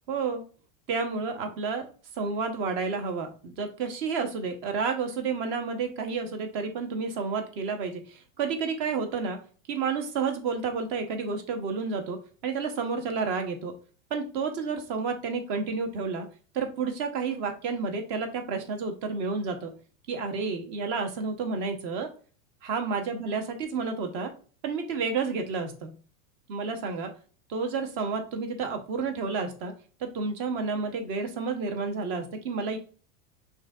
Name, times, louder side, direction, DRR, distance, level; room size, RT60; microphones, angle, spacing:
voice 1, 0.1-0.4 0.9-1.9 2.2-9.4 9.7-13.7 14.1-16.3 16.5-19.7 20.1-22.1 22.6-24.3 24.6-25.9 26.5-27.1 27.5-29.7 30.0-32.8, right 5 dB, 50° right, 6 dB, 1.0 m, -30 dB
5.9 x 2.7 x 2.4 m, 0.39 s
supercardioid pair, 150°, 40 cm